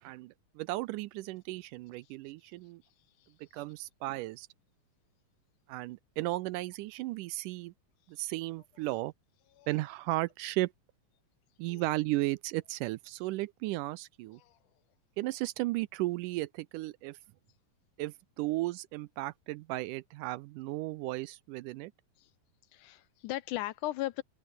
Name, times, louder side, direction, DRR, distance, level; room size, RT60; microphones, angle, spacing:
voice 1, 0.0-2.8 3.4-4.5 5.7-7.7 8.1-9.1 9.7-10.7 11.6-14.4 15.2-17.2 18.0-21.9, right 19 dB, 80° right, 2.0 m, -35 dB
voice 2, 22.7-24.2, left 16 dB, 80° left, 2.0 m, -37 dB
open air
omnidirectional pair, 3.9 m